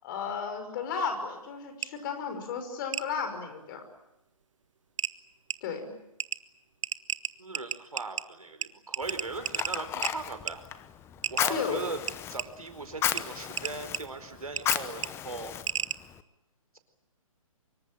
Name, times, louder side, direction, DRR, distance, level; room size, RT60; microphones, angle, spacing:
voice 1, 0.0-3.8 5.6-5.8 11.5-11.8, left 6 dB, 35° left, 7 dB, 5.7 m, -34 dB
sound 1, 1.8-1.9 2.9-3.1 4.4-4.5 5.0-5.1 5.5-5.6 6.2-6.4 6.8-8.2 8.6-8.7 8.9-10.1 10.5-10.6 11.2-11.4 12.1-12.5 13.2-13.3 13.6-14.0 14.6-14.8 15.0-15.1 15.7-16.0, right 7 dB, 60° right, 1.1 m, -32 dB
voice 2, 7.4-10.6 11.3-12.0 12.3-15.5, right 3 dB, 80° right, 8 dB, 4.5 m, -39 dB
Fire, 9.0-16.2, left 10 dB, 15° left, 1.0 m, -35 dB
25.5 x 23.0 x 8.9 m, 0.89 s
figure-of-eight pair, 135°, 18 cm